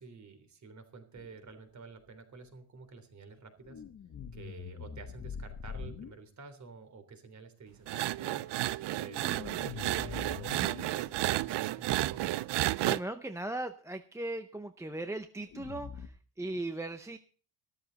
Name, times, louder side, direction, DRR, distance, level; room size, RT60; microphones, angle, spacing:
voice 1, 0.0-3.8 4.3-8.5 9.0-12.5, right 4 dB, 35° right, 8 dB, 3.3 m, -50 dB
sound 1, 1.2-1.5 3.6-6.1 8.7-11.3 15.5-16.1, left 6 dB, 35° left, 1.1 m, -44 dB
sound 2, 7.9-13.0, right 16 dB, 55° right, 0.6 m, -32 dB
voice 2, 12.8-17.2, right 2 dB, 5° right, 8 dB, 0.6 m, -38 dB
14.5 x 13.0 x 4.0 m, 0.39 s
cardioid pair, 165°, 49 cm